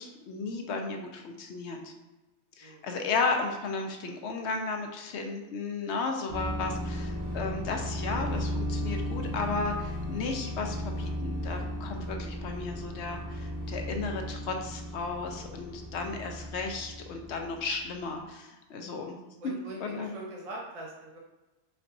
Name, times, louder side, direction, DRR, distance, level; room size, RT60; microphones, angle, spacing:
voice 1, 0.0-1.9 2.6-19.2 19.4-19.5 19.8-20.1, left 4 dB, 80° left, 3 dB, 0.9 m, -34 dB
sound 1, 6.3-18.0, left 1 dB, 15° right, 1.4 m, -35 dB
voice 2, 19.4-21.2, right 1 dB, 35° right, -2 dB, 0.8 m, -42 dB
4.3 x 3.9 x 2.6 m, 1.1 s
omnidirectional pair, 1.2 m